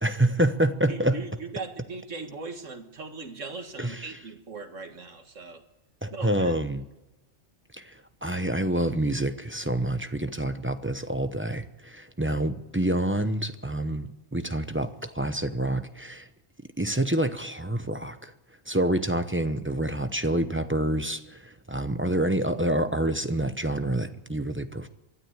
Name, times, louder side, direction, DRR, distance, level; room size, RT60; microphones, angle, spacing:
voice 1, 0.0-1.2 3.8-4.1 6.0-6.8 7.8-16.3 16.8-18.3 18.7-24.9, right 1 dB, 10° right, 0.7 m, -27 dB
voice 2, 0.9-5.6 6.1-6.5, right 4 dB, 90° right, 2.2 m, -39 dB
23.5 x 13.0 x 8.9 m
omnidirectional pair, 1.2 m